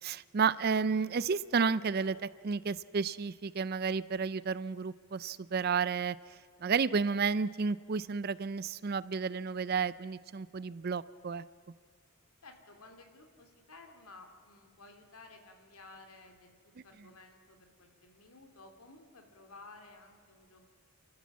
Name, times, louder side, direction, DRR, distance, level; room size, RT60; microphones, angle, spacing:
voice 1, 0.0-6.2 6.6-11.4, right 5 dB, 45° right, 18 dB, 0.4 m, -31 dB
voice 2, 12.4-16.5 16.8-20.7, left 3 dB, 85° left, 5 dB, 2.7 m, -55 dB
29.0 x 13.5 x 7.2 m, 2.1 s
head